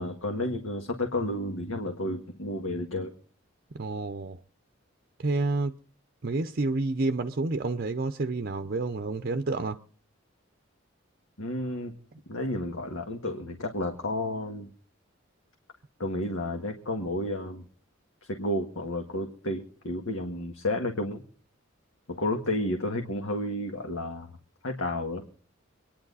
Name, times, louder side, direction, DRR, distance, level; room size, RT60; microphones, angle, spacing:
voice 1, 0.0-3.1 11.4-11.9 12.3-14.7 16.0-17.7 18.3-21.2 22.1-24.3 24.6-25.2, left 1 dB, 75° left, 1.8 m, -31 dB
voice 2, 3.8-4.4 5.2-5.7 6.2-9.8, right 3 dB, 45° right, 0.6 m, -29 dB
25.0 x 10.5 x 4.1 m
head